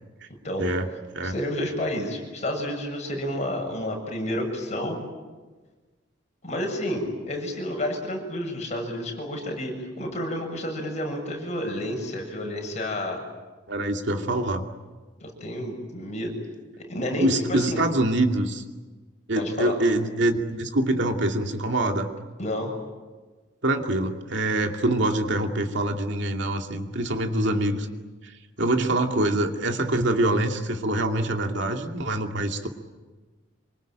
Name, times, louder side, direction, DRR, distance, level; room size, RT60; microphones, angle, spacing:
voice 1, 0.6-0.9 1.1-1.3 13.7-14.6 17.2-18.6 19.3-22.1 23.6-27.9 28.2-32.7, right 1 dB, 65° right, 4 dB, 2.6 m, -25 dB
voice 2, 1.2-5.0 6.4-13.2 15.2-16.4 16.8-17.8 19.4-19.8 22.4-22.7, left 1 dB, 40° left, 1 dB, 7.5 m, -30 dB
26.5 x 24.5 x 9.1 m, 1.3 s
head